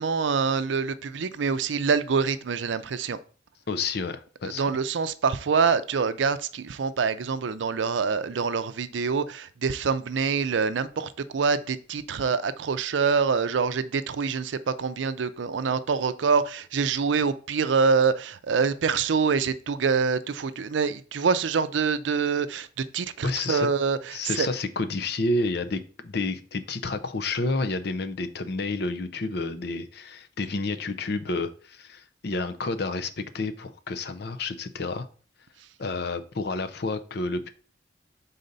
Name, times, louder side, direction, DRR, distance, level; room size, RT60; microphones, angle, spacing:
voice 1, 0.0-3.2 4.4-24.5, right 5 dB, 80° right, 0.5 m, -25 dB
voice 2, 3.7-4.6 23.2-23.7 24.1-35.1 35.8-37.5, left 3 dB, 60° left, 0.6 m, -30 dB
6.6 x 4.1 x 4.0 m
head